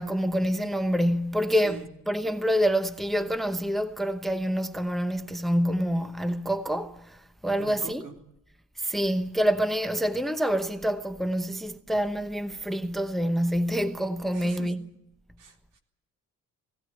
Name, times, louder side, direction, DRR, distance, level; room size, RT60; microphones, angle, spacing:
voice 1, 0.0-8.0 8.8-14.8, equal, ahead, 0.9 m, -27 dB
voice 2, 7.6-8.1 14.3-14.7 15.4-15.8, right 3 dB, 75° right, 3.8 m, -43 dB
19.0 x 17.0 x 10.0 m
cardioid pair, 130°, 32 cm